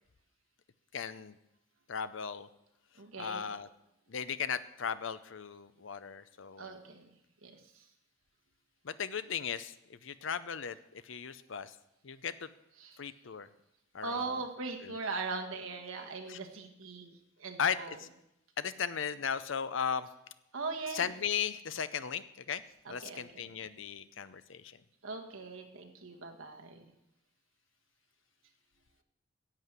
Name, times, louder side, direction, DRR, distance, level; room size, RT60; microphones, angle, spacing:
voice 1, 0.9-1.4 1.9-2.5 3.2-3.7 4.1-6.8 8.8-11.8 12.0-12.5 13.0-13.5 13.9-14.4 14.8-15.0 16.3-16.4 17.6-18.1 18.6-20.1 20.9-22.6 22.9-24.8, left 7 dB, 70° left, 14 dB, 0.6 m, -37 dB
voice 2, 3.0-3.5 6.6-7.0 7.4-7.6 12.8-13.0 14.0-17.1 17.4-18.0 20.5-21.1 22.9-23.2 25.0-26.8, right 4 dB, 80° right, 3 dB, 1.6 m, -40 dB
10.5 x 7.6 x 8.1 m, 0.85 s
head